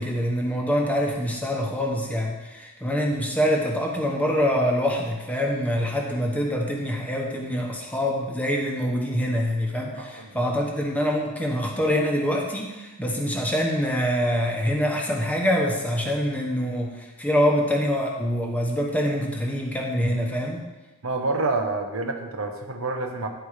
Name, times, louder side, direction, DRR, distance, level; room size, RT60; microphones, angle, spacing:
voice 1, 0.0-20.6, equal, 5° left, -1 dB, 1.1 m, -25 dB
voice 2, 10.0-10.3 21.0-23.3, right 3 dB, 65° right, 5 dB, 0.9 m, -28 dB
10.5 x 4.7 x 4.9 m, 1.1 s
head